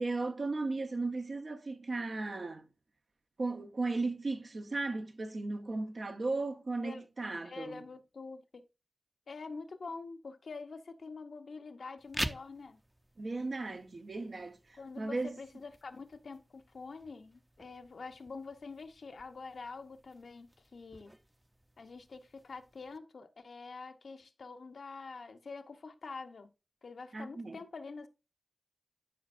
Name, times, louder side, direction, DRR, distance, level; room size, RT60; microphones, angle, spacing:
voice 1, 0.0-2.7 3.4-7.8 13.2-15.4 27.1-27.6, right 3 dB, 70° right, 0.9 m, -36 dB
voice 2, 7.4-8.6 9.3-12.8 14.8-21.1 21.8-26.5 26.8-28.1, left 4 dB, 90° left, 0.8 m, -46 dB
sound 1, 12.0-23.0, right 1 dB, 15° right, 0.6 m, -47 dB
11.5 x 5.2 x 2.5 m
cardioid pair, 45°, 0 cm